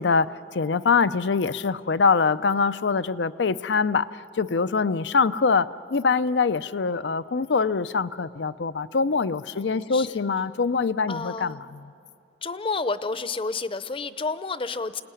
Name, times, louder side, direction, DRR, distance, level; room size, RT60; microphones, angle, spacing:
voice 1, 0.0-4.1 4.4-11.8, left 5 dB, 80° left, 14 dB, 0.6 m, -24 dB
voice 2, 9.5-10.2 11.1-11.7 12.4-15.0, left 3 dB, 30° left, 14 dB, 0.7 m, -30 dB
28.5 x 19.0 x 9.8 m, 2.6 s
head